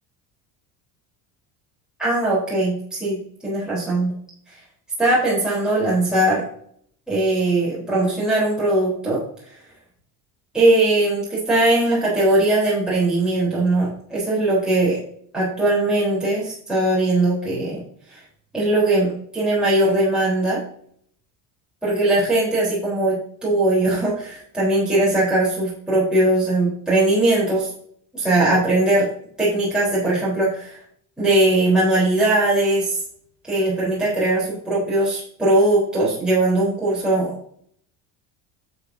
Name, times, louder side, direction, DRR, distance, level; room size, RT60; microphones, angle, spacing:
voice 1, 2.0-4.1 5.0-6.5 7.1-9.2 10.5-15.0 15.3-17.8 18.1-18.2 18.5-20.6 21.8-27.7 28.1-29.1 29.4-30.8 31.2-33.0 33.5-37.4, right 2 dB, ahead, -8 dB, 4.1 m, -20 dB
12.0 x 7.2 x 2.8 m, 0.64 s
cardioid pair, 155°, 40 cm